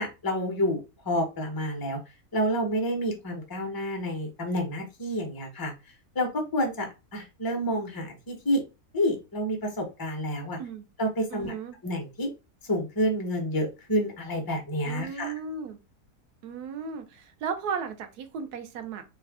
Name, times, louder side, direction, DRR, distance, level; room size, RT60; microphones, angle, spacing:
voice 1, 0.0-2.0 2.3-5.7 6.1-8.6 8.9-10.6 11.0-11.5 11.8-12.3 12.7-15.3, equal, 20° left, 0.7 m, -29 dB
voice 2, 11.3-11.8 14.8-15.8 16.4-19.0, right 6 dB, 90° right, 1.2 m, -35 dB
3.2 x 2.5 x 3.4 m
omnidirectional pair, 1.6 m